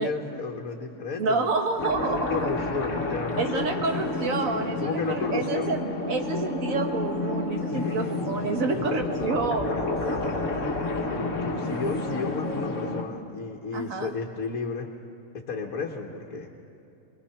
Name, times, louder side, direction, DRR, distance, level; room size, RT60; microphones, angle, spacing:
voice 1, 0.0-1.5 2.0-4.1 4.8-5.7 7.7-8.3 8.8-10.7 11.1-14.9 15.5-16.5, left 4 dB, 85° left, 2 dB, 1.6 m, -33 dB
voice 2, 1.2-2.4 3.4-9.7 13.7-14.1, right 3 dB, 75° right, 4 dB, 1.9 m, -28 dB
sound 1, 1.8-13.0, left 2 dB, 65° left, 1.7 m, -30 dB
23.5 x 20.0 x 5.7 m, 2.8 s
omnidirectional pair, 1.4 m